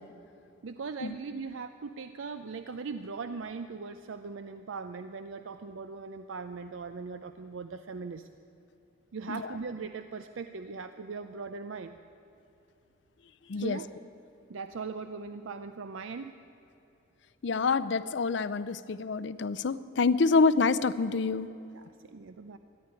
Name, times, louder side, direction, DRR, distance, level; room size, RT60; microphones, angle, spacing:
voice 1, 0.6-8.3 9.1-12.0 13.5-13.9 14.5-16.3 21.7-22.6, right 4 dB, 80° right, 10 dB, 0.5 m, -39 dB
voice 2, 17.4-21.5, left 4 dB, 65° left, 15 dB, 0.5 m, -27 dB
14.0 x 10.5 x 9.7 m, 2.9 s
head